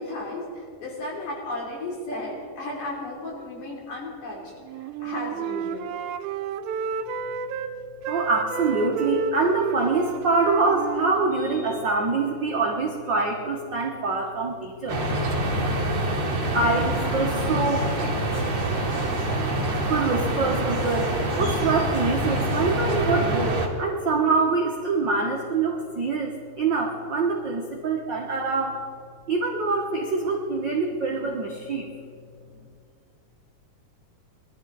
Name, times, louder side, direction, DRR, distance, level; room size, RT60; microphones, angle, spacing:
voice 1, 0.0-5.9, left 2 dB, 70° left, -3 dB, 4.7 m, -34 dB
Wind instrument woodwind instrument, 4.6-7.7 8.0-11.8, right 6 dB, 80° right, 1.8 m, -31 dB
voice 2, 8.1-15.1 16.5-18.0 19.9-28.8 29.3-31.9, right 3 dB, 65° right, 0 dB, 1.1 m, -25 dB
sound 1, 14.9-23.7, right 1 dB, 40° right, 2.0 m, -26 dB
sound 2, 16.4-23.0, left 2 dB, 90° left, 4.7 m, -38 dB
21.5 x 12.5 x 4.0 m, 2.3 s
omnidirectional pair, 3.9 m